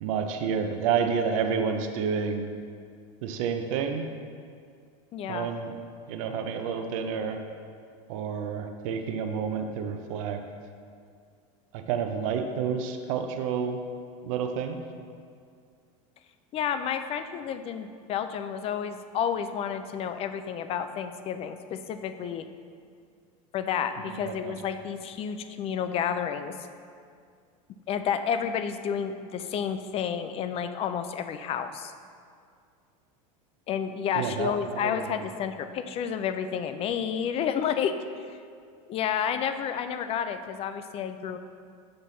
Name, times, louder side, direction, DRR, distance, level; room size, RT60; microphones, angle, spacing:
voice 1, 0.0-2.5 3.2-4.0 5.3-5.7 6.1-7.4 8.1-10.4 11.7-13.8 14.2-14.8 24.1-24.5 34.2-35.2, right 6 dB, 75° right, 6 dB, 0.6 m, -29 dB
voice 2, 5.1-5.5 16.5-22.5 23.5-26.6 27.9-31.9 33.7-37.9 38.9-41.4, left 8 dB, 35° left, 9 dB, 0.4 m, -30 dB
6.6 x 5.7 x 4.0 m, 2.2 s
supercardioid pair, 125°, 17 cm